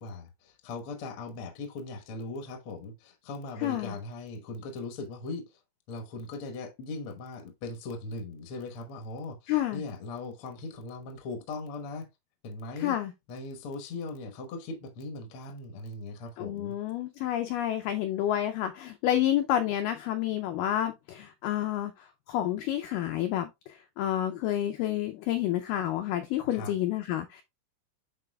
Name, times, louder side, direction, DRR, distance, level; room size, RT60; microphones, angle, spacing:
voice 1, 0.0-5.5 5.9-12.1 12.4-13.0 13.3-16.7 26.5-26.7, left 3 dB, 70° left, 1.3 m, -39 dB
voice 2, 3.6-3.9 9.5-9.8 12.8-13.1 16.4-27.4, left 12 dB, 85° left, 1.9 m, -29 dB
10.5 x 4.1 x 2.3 m
omnidirectional pair, 4.5 m